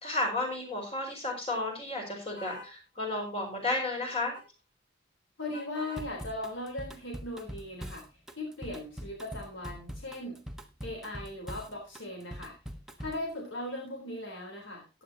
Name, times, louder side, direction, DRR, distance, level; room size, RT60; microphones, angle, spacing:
voice 1, 0.0-4.4, left 2 dB, 30° left, 1 dB, 5.3 m, -32 dB
sound 1, 2.4-2.7 4.1-4.5 5.5-6.1, left 2 dB, 50° left, 7.0 m, -46 dB
voice 2, 5.4-8.1 8.4-10.4 10.8-12.6 13.0-15.0, left 1 dB, 85° left, 1 dB, 3.8 m, -38 dB
Drum kit / Drum, 6.0-13.3, equal, 5° right, 1.2 m, -43 dB
15.5 x 10.0 x 2.9 m, 0.27 s
head